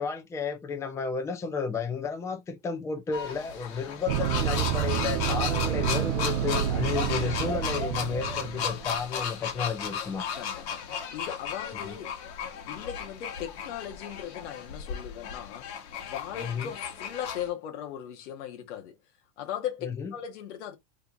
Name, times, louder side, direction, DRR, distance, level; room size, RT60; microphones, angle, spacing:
voice 1, 0.0-10.3 11.7-12.0 16.4-16.7 19.8-20.1, left 5 dB, 10° left, 0.4 m, -32 dB
sound 1, 3.1-17.5, left 7 dB, 65° left, 1.2 m, -35 dB
sound 2, 4.1-8.9, right 10 dB, 70° right, 0.5 m, -29 dB
voice 2, 10.3-12.3 12.7-15.7 16.0-18.9 19.4-20.8, left 10 dB, 85° left, 0.9 m, -38 dB
2.8 x 2.5 x 3.5 m
supercardioid pair, 135°, 35 cm